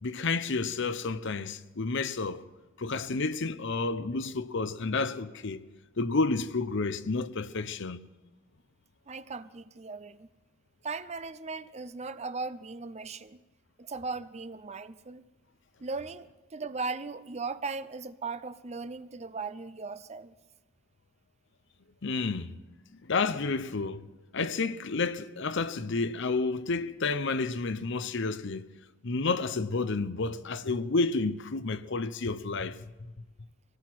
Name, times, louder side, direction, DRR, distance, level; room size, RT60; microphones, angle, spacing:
voice 1, 0.0-2.4 2.8-5.6 6.0-8.0 22.0-22.5 23.0-24.1 24.3-28.7 29.0-32.8, left 3 dB, 55° left, 0.8 m, -30 dB
voice 2, 9.1-10.3 10.8-13.4 13.8-15.2 15.8-20.3, right 4 dB, 30° right, 0.6 m, -38 dB
24.5 x 18.0 x 6.1 m
head